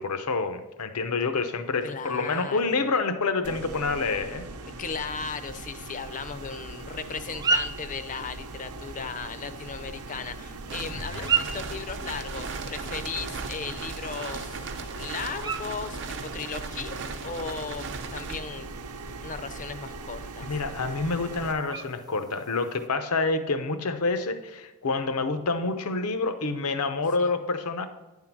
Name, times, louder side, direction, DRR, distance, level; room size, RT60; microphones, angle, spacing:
voice 1, 0.0-4.4 10.9-11.4 20.4-27.9, left 3 dB, 75° left, 9 dB, 0.7 m, -28 dB
voice 2, 1.8-2.8 4.8-16.9 17.2-18.7 19.2-20.5 27.2-27.3, left 5 dB, 35° left, 11 dB, 0.5 m, -36 dB
sound 1, 3.4-21.5, right 3 dB, 90° right, 0.8 m, -40 dB
sound 2, 5.1-22.9, right 5 dB, 15° right, 0.4 m, -37 dB
sound 3, 10.7-18.4, right 4 dB, 55° right, 0.6 m, -38 dB
9.7 x 3.8 x 5.9 m, 1.1 s
head